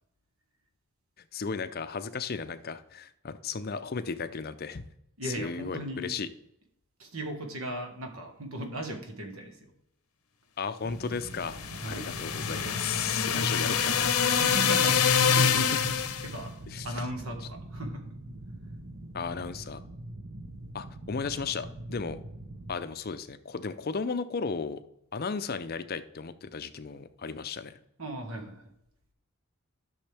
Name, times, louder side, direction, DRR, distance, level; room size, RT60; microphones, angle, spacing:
voice 1, 1.3-4.9 5.2-6.3 10.6-11.6 11.8-14.1 15.5-15.8 16.7-16.9 19.1-19.8 20.7-22.2 22.7-24.8 25.1-27.8, left 5 dB, 45° left, 11 dB, 0.5 m, -35 dB
voice 2, 5.2-6.1 7.0-9.7 11.8-12.1 14.4-15.8 16.2-16.6 16.8-18.1 28.0-28.7, right 1 dB, 70° right, 5 dB, 1.6 m, -37 dB
sound 1, 10.8-22.8, right 1 dB, 50° right, 0.8 m, -43 dB
sound 2, 11.4-16.3, left 7 dB, 85° left, 0.9 m, -25 dB
11.5 x 6.4 x 3.4 m, 0.78 s
head